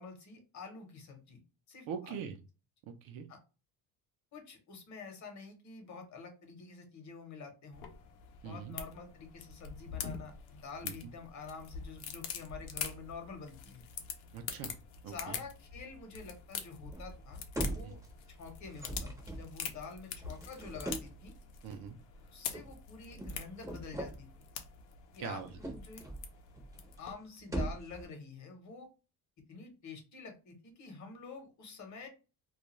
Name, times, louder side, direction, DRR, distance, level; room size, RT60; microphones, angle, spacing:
voice 1, 0.0-1.4 1.7-2.3 3.3-3.4 4.3-7.8 8.4-13.8 15.1-18.0 18.3-21.3 22.3-24.3 25.1-26.1 27.0-28.9 29.5-32.1, left 4 dB, 45° left, 4 dB, 0.9 m, -48 dB
voice 2, 1.9-2.4 2.9-3.3 8.4-8.8 10.8-11.0 14.3-14.8 15.0-15.4 17.8-18.0 21.6-22.0 25.2-25.5, right 7 dB, 60° right, 6 dB, 0.6 m, -42 dB
sound 1, 7.7-27.1, left 7 dB, 85° left, 0.7 m, -45 dB
sound 2, 16.9-17.3 17.5-18.3 18.6-21.3 22.5-22.8 23.1-24.2 25.3-26.3 26.5-27.0 27.4-28.0, right 1 dB, 10° right, 0.6 m, -41 dB
2.4 x 2.2 x 3.0 m, 0.31 s
cardioid pair, 140°, 41 cm